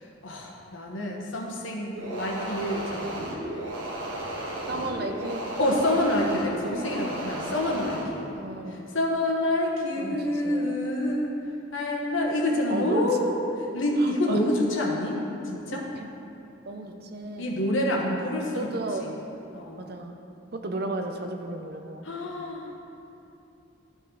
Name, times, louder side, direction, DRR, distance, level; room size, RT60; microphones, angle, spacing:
voice 1, 0.2-3.3 5.6-8.3 8.9-11.4 11.7-13.3 13.7-15.8 17.4-18.7 19.0-19.1 19.5-19.8 22.0-22.7, left 1 dB, 75° left, -1 dB, 1.2 m, -27 dB
sound 1, 2.0-8.1, right 1 dB, 75° right, 1.3 m, -34 dB
voice 2, 4.7-5.4 8.3-8.8 10.0-10.2 10.4-10.7 12.7-13.2 14.0-14.4 15.7-16.1 16.7-17.5 18.5-19.1 19.8-20.1 20.5-22.1, right 2 dB, 50° right, 5 dB, 0.6 m, -34 dB
12.0 x 5.4 x 3.8 m, 2.7 s
head